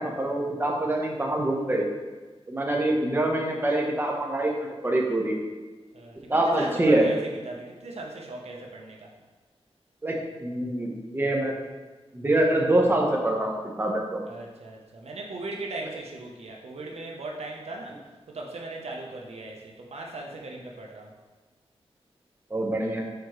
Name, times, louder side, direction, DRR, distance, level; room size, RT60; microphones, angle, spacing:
voice 1, 0.0-1.9 2.5-5.4 6.3-7.0 10.0-11.5 12.1-14.2 22.5-23.0, right 1 dB, 20° right, 0 dB, 1.0 m, -25 dB
voice 2, 5.9-9.1 14.3-18.0 18.3-21.1, right 2 dB, 80° right, 0 dB, 0.8 m, -38 dB
6.7 x 4.6 x 3.1 m, 1.3 s
wide cardioid pair, 85°, 11 cm